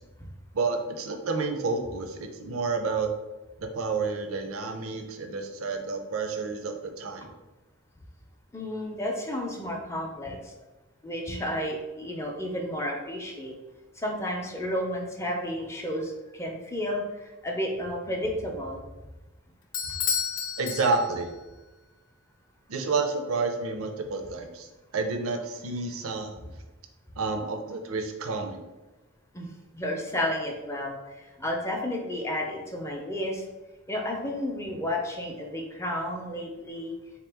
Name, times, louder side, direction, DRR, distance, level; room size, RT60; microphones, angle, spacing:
voice 1, 0.5-3.1 3.6-7.3 20.6-21.3 22.7-24.7 24.9-26.4 27.2-28.6, right 4 dB, 85° right, 5 dB, 0.5 m, -30 dB
voice 2, 8.5-10.5 11.0-13.5 14.0-18.8 29.3-29.5 29.7-33.4 33.9-36.9, left 1 dB, 15° left, 1 dB, 0.5 m, -32 dB
Bell / Doorbell, 19.7-21.4, left 7 dB, 65° left, 0.4 m, -31 dB
3.6 x 2.9 x 3.4 m, 1.1 s
head